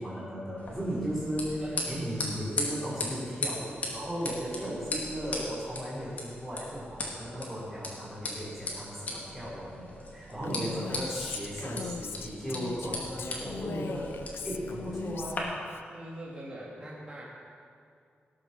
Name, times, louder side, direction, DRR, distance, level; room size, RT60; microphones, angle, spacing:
voice 1, 0.0-14.2 14.4-15.4, equal, 5° left, -9 dB, 4.2 m, -36 dB
sound 1, 0.6-15.4, left 2 dB, 45° left, 2.7 m, -39 dB
voice 2, 10.3-10.9 14.4-14.6 15.9-17.2, right 1 dB, 25° right, -6 dB, 2.7 m, -43 dB
Female speech woman speaking, 10.4-15.8, left 6 dB, 80° left, 0.6 m, -40 dB
18.0 x 7.7 x 7.0 m, 2.3 s
wide cardioid pair, 165°, 4 cm